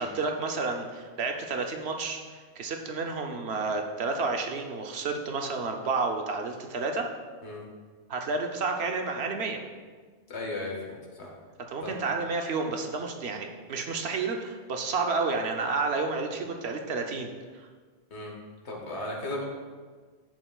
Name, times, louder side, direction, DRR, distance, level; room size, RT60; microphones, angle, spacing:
voice 1, 0.0-2.2 2.6-7.1 8.1-9.6 11.7-17.7, right 4 dB, 70° right, 3 dB, 1.0 m, -30 dB
voice 2, 10.3-11.3 11.8-12.0 18.1-18.3 18.6-19.4, left 2 dB, 80° left, -1 dB, 1.7 m, -35 dB
10.5 x 7.7 x 2.3 m, 1.5 s
omnidirectional pair, 1.1 m